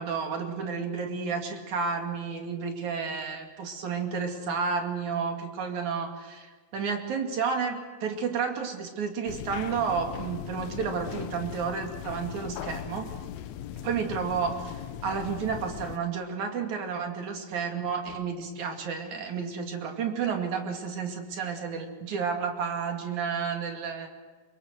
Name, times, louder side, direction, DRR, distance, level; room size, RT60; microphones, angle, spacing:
voice 1, 0.0-13.1 13.8-14.7 15.0-24.1, right 6 dB, 60° right, 3 dB, 3.7 m, -31 dB
sound 1, 9.3-16.0, left 11 dB, 80° left, 1.6 m, -39 dB
25.5 x 22.0 x 6.4 m, 1.4 s
omnidirectional pair, 4.1 m